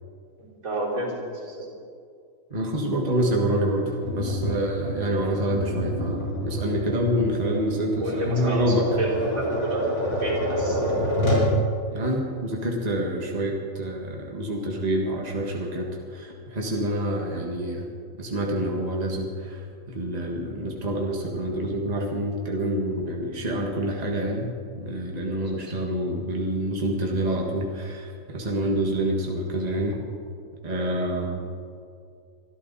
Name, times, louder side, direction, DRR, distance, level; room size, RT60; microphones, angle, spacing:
voice 1, 0.4-1.7 8.0-9.8 10.2-11.0 25.4-25.6, right 1 dB, 80° right, -6 dB, 5.0 m, -31 dB
voice 2, 2.5-8.9 11.9-17.9 18.2-24.5 24.8-30.0 30.6-31.4, right 1 dB, 30° right, 0 dB, 1.8 m, -27 dB
Tap, 4.0-11.5, equal, 85° left, 4.4 m, -27 dB
24.0 x 13.0 x 4.2 m, 2.4 s
omnidirectional pair, 1.4 m